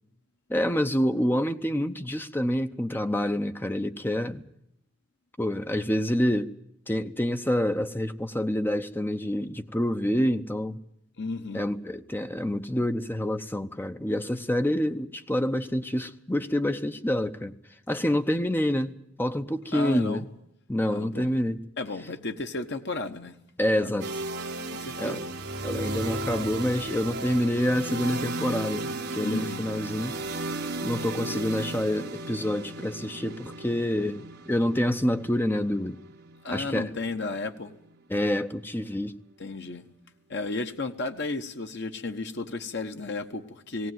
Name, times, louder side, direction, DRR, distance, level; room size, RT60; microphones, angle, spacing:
voice 1, 0.5-4.4 5.4-6.5 6.9-10.8 11.5-17.5 17.9-20.3 20.7-21.6 23.6-24.1 25.0-25.2 25.6-30.2 30.8-36.0 36.5-36.9 38.1-39.1, left 1 dB, 10° left, 0.7 m, -27 dB
voice 2, 11.2-11.7 19.7-20.3 20.8-21.4 21.8-23.4 23.8-24.0 24.7-25.2 29.2-29.7 36.4-37.7 39.4-39.8 40.3-43.9, left 3 dB, 50° left, 1.1 m, -33 dB
sound 1, 24.0-37.9, right 2 dB, 50° right, 1.7 m, -35 dB
18.5 x 17.5 x 9.3 m
head